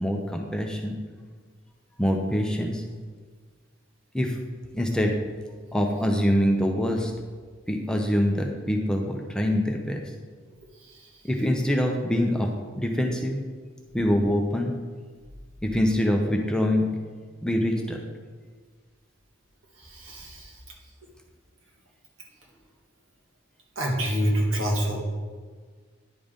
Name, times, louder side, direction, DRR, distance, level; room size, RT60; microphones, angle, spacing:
voice 1, 0.0-0.9 2.0-2.8 4.1-4.4 4.7-5.2 5.7-7.1 7.7-10.0 11.2-12.5 12.7-13.4 13.9-14.7 15.6-16.9 17.4-18.0, equal, 5° left, 1 dB, 0.6 m, -24 dB
voice 2, 19.8-20.5 23.7-25.0, equal, 80° right, -1 dB, 1.7 m, -26 dB
10.0 x 3.8 x 5.2 m, 1.5 s
head